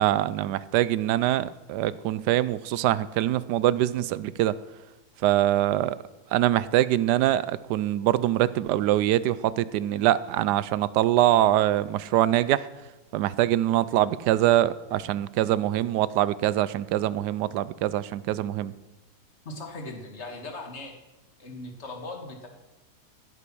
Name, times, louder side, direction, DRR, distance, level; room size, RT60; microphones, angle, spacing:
voice 1, 0.0-4.6 5.2-5.9 6.3-12.6 13.1-18.7, right 13 dB, 80° right, 17 dB, 1.2 m, -24 dB
voice 2, 19.5-21.0 21.4-22.5, left 2 dB, 40° left, 3 dB, 2.0 m, -39 dB
16.0 x 8.5 x 6.2 m, 1.1 s
omnidirectional pair, 1.8 m